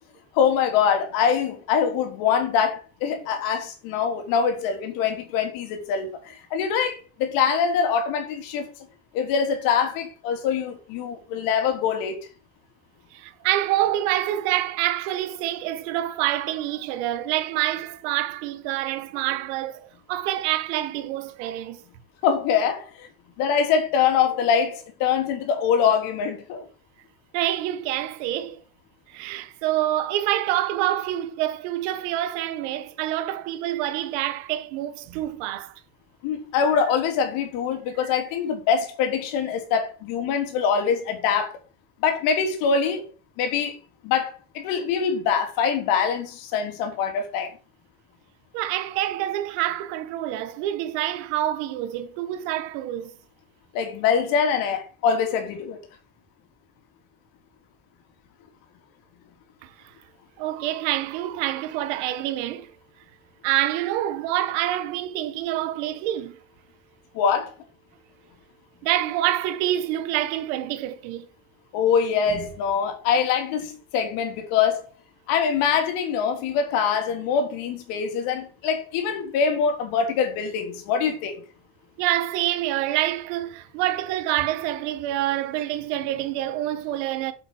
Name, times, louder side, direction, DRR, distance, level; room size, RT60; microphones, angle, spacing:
voice 1, 0.3-8.7 9.1-12.2 22.2-23.1 23.4-26.6 36.2-41.5 42.0-43.1 43.4-43.8 44.0-47.5 53.7-55.8 67.1-67.5 71.7-74.9 75.3-81.4, left 7 dB, 75° left, 3.5 m, -24 dB
voice 2, 13.1-21.8 27.3-28.6 29.1-35.7 48.5-53.1 59.6-59.7 60.4-62.7 63.4-66.4 68.8-71.3 72.3-72.5 82.0-87.3, right 13 dB, 80° right, 1.6 m, -27 dB
8.1 x 7.8 x 6.5 m
supercardioid pair, 75°, 34 cm